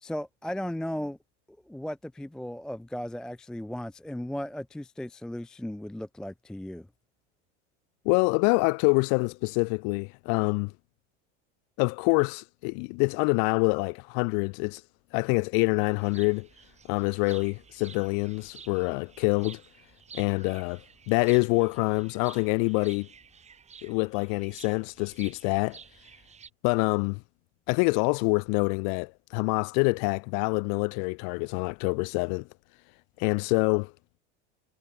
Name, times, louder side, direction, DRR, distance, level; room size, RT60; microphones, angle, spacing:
voice 1, 0.0-1.2 1.7-6.9, left 1 dB, ahead, 0.5 m, -36 dB
voice 2, 8.0-10.7 11.8-14.8 15.1-16.5 16.9-19.6 20.1-23.1 23.8-25.8 26.6-27.2 27.7-32.5 33.2-33.9, left 40 dB or more, 50° left, 1.0 m, -26 dB
sound 1, 15.8-26.5, right 6 dB, 20° right, 2.9 m, -52 dB
supercardioid pair, 135°, 36 cm